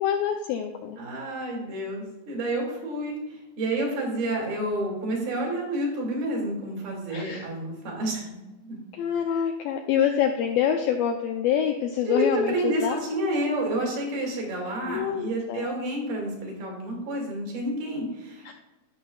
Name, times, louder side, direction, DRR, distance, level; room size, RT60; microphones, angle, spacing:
voice 1, 0.0-1.0 7.1-7.5 8.9-13.0 14.9-15.7 18.5-18.6, left 9 dB, 85° left, 4 dB, 2.1 m, -26 dB
voice 2, 1.0-8.4 8.6-8.8 12.1-18.5, right 1 dB, 65° right, -1 dB, 4.1 m, -29 dB
15.5 x 6.1 x 2.4 m, 1.0 s
omnidirectional pair, 4.7 m